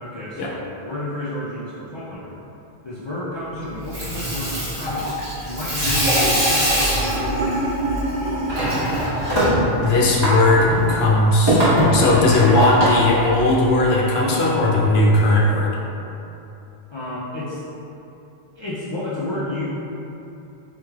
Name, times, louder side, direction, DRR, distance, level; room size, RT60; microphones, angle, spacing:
voice 1, 0.0-2.4 2.8-7.0 16.9-17.6 18.6-19.6, left 1 dB, 45° left, -10 dB, 0.4 m, -31 dB
Water tap faucet / Sink (filling or washing), 3.7-13.9, equal, 25° right, 1.1 m, -22 dB
voice 2, 9.8-11.6 11.9-15.8, left 2 dB, 75° left, -4 dB, 0.9 m, -17 dB
4.4 x 3.1 x 2.3 m, 2.9 s
omnidirectional pair, 1.1 m